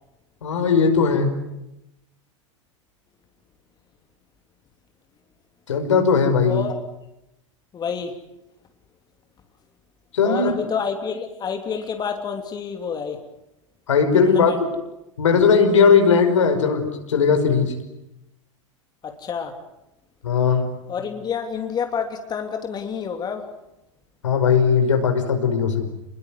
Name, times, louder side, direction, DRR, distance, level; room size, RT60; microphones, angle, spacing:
voice 1, 0.4-1.3 5.7-6.6 10.1-10.5 13.9-14.5 15.2-17.7 20.2-20.7 24.2-25.8, left 5 dB, 70° left, 6 dB, 5.2 m, -18 dB
voice 2, 7.7-8.2 10.2-13.2 14.1-14.6 19.0-19.6 20.9-23.5, left 6 dB, 25° left, 5 dB, 3.0 m, -28 dB
29.0 x 21.5 x 9.5 m, 0.89 s
figure-of-eight pair, 90°, 16 cm